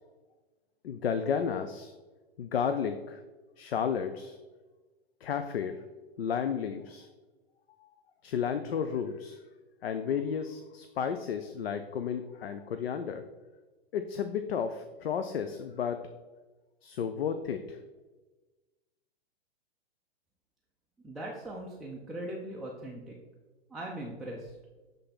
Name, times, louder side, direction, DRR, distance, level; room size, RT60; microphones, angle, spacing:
voice 1, 0.8-1.9 2.4-3.2 3.6-4.4 5.2-5.7 6.2-7.1 8.2-9.4 9.8-13.2 13.9-16.0 16.8-17.8, left 7 dB, 75° left, 8 dB, 0.5 m, -32 dB
voice 2, 21.0-23.2 23.7-24.6, right 1 dB, ahead, -3 dB, 0.3 m, -40 dB
7.5 x 3.4 x 4.1 m, 1.2 s
figure-of-eight pair, 110°, 31 cm